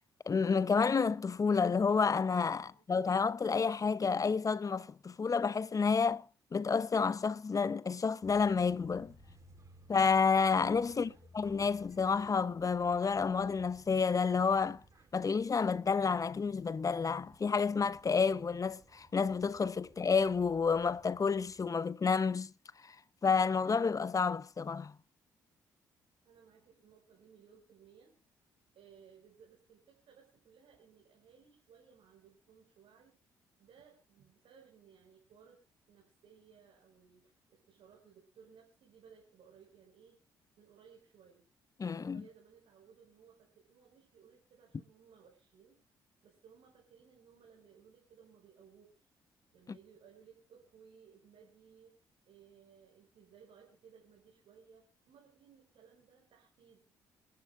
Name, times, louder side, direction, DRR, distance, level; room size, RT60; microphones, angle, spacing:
voice 1, 0.3-6.2 6.5-9.1 9.9-11.1 11.3-14.8 15.1-22.5 22.8-22.9 23.2-24.9 41.8-42.2, left 5 dB, 35° left, 0.9 m, -30 dB
sound 1, 8.2-21.7, right 1 dB, 30° right, 4.8 m, -60 dB
voice 2, 10.9-11.3 26.2-28.1 28.7-33.1 33.6-40.2 40.6-41.4 42.0-45.8 46.2-49.1 49.5-52.0 52.2-56.9, right 7 dB, 65° right, 4.9 m, -61 dB
28.0 x 11.5 x 2.2 m
hypercardioid pair, 45°, 10 cm